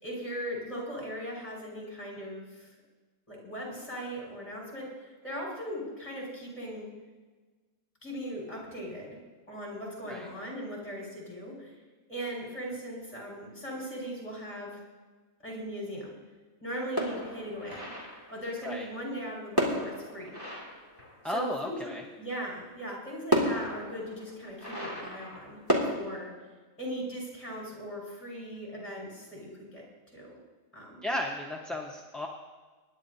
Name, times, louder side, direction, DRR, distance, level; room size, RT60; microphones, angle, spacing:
voice 1, 0.0-2.7 3.3-6.9 8.0-9.2 9.5-11.7 12.1-14.8 15.4-16.1 16.6-17.9 18.3-20.4 21.2-21.9 22.2-25.6 25.8-26.3 26.8-29.8 30.1-30.4 30.7-31.0, equal, 25° left, -3 dB, 5.1 m, -39 dB
sound 1, 17.0-18.4 19.6-21.5 22.7-22.8 23.3-26.0, equal, 15° right, 2.3 m, -32 dB
voice 2, 21.2-22.0 31.0-32.3, left 1 dB, ahead, -1 dB, 0.9 m, -34 dB
25.5 x 11.0 x 2.7 m, 1.3 s
omnidirectional pair, 1.5 m